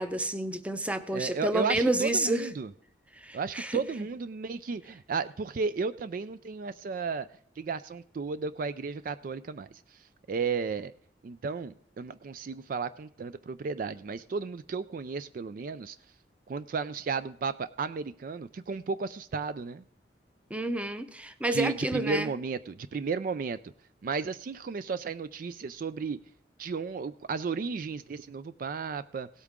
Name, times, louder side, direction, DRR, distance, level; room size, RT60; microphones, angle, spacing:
voice 1, 0.0-2.5 3.2-3.8 20.5-22.3, right 1 dB, 10° right, 11 dB, 0.7 m, -29 dB
voice 2, 1.1-2.7 3.3-7.3 7.6-10.9 11.2-16.0 16.5-19.8 21.5-23.7 24.0-26.2 26.6-29.3, right 5 dB, 50° right, 14 dB, 0.3 m, -34 dB
17.0 x 8.3 x 3.6 m, 0.65 s
head